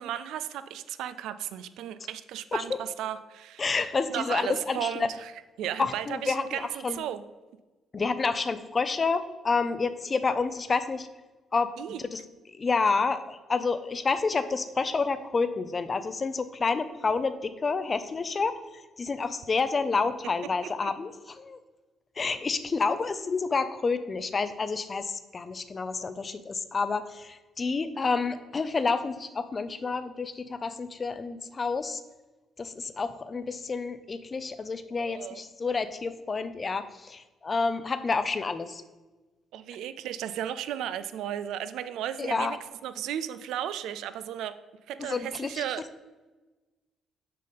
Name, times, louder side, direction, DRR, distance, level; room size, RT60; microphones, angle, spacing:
voice 1, 0.0-5.3 5.6-7.2 11.8-12.0 20.6-20.9 35.0-35.4 39.5-44.5 44.9-45.8, right 10 dB, 85° right, 13 dB, 0.3 m, -35 dB
voice 2, 3.6-4.9 5.8-7.0 7.9-11.1 11.5-11.7 12.1-12.2 12.6-18.6 19.0-21.1 21.4-21.6 22.2-32.0 32.6-38.8 42.2-42.6 45.0-45.6, left 4 dB, 35° left, 12 dB, 0.5 m, -29 dB
6.6 x 3.9 x 5.2 m, 1.2 s
cardioid pair, 90°, 0 cm